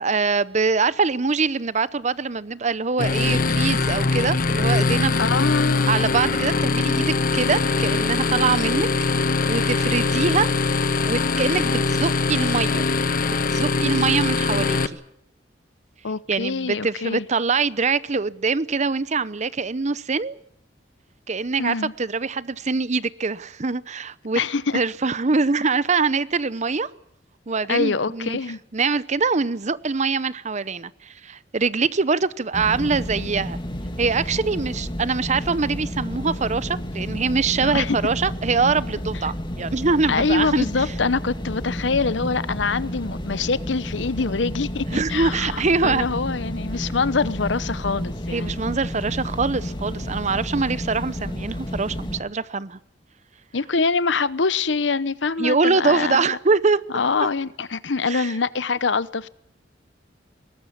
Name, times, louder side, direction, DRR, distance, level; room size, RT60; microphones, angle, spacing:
voice 1, 0.0-5.2 5.9-8.9 9.5-10.5 11.0-12.8 13.2-14.8 16.3-20.3 21.3-24.4 24.7-26.9 27.5-28.4 28.7-33.6 34.0-40.7 44.9-46.0 48.3-52.8 55.4-56.8 58.1-58.3, right 4 dB, 40° right, 0.8 m, -23 dB
sound 1, 3.0-14.9, left 3 dB, 50° left, 1.2 m, -22 dB
voice 2, 5.2-6.0 16.0-17.3 21.6-21.9 24.3-24.8 27.7-28.6 37.6-38.0 40.1-48.6 53.5-56.4 56.9-59.3, left 4 dB, 80° left, 0.9 m, -24 dB
sound 2, 32.5-52.2, equal, 25° left, 2.3 m, -31 dB
21.0 x 19.0 x 8.6 m
head